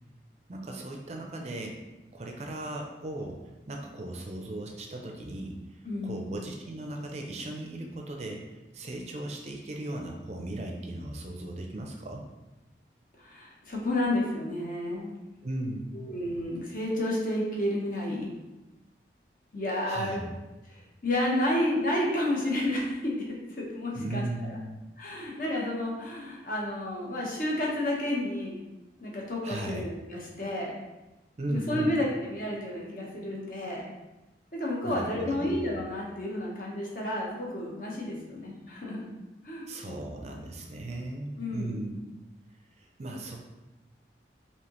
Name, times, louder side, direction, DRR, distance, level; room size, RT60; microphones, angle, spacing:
voice 1, 0.5-1.8 2.1-3.4 3.7-12.2 15.4-16.1 19.9-20.3 23.9-24.8 29.4-29.9 31.4-32.0 34.8-35.6 39.7-42.0 42.8-43.4, right 1 dB, 40° right, 1 dB, 0.5 m, -37 dB
voice 2, 5.8-6.3 13.2-15.1 15.9-18.3 19.5-20.2 20.7-23.2 23.6-24.5 25.0-28.5 29.0-30.7 31.5-33.8 34.5-39.0 39.4-40.0 41.4-41.8, left 1 dB, 50° left, -3 dB, 1.0 m, -31 dB
4.9 x 2.8 x 3.0 m, 1.0 s
head